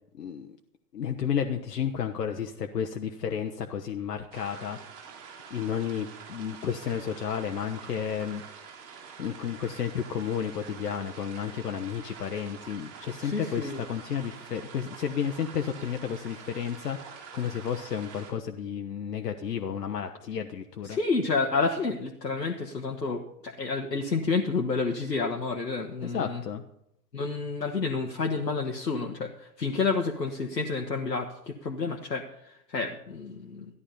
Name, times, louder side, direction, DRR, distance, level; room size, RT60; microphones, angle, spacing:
voice 1, 0.1-0.5 0.9-4.8 5.5-8.4 9.2-21.0 26.0-26.6, left 8 dB, 70° left, 5 dB, 1.1 m, -32 dB
sound 1, 4.3-18.3, right 6 dB, 45° right, 3.6 m, -46 dB
voice 2, 13.2-13.8 20.8-26.4 27.1-33.7, left 4 dB, 90° left, 2 dB, 1.4 m, -30 dB
14.5 x 11.0 x 5.5 m, 0.78 s
figure-of-eight pair, 100°, 49 cm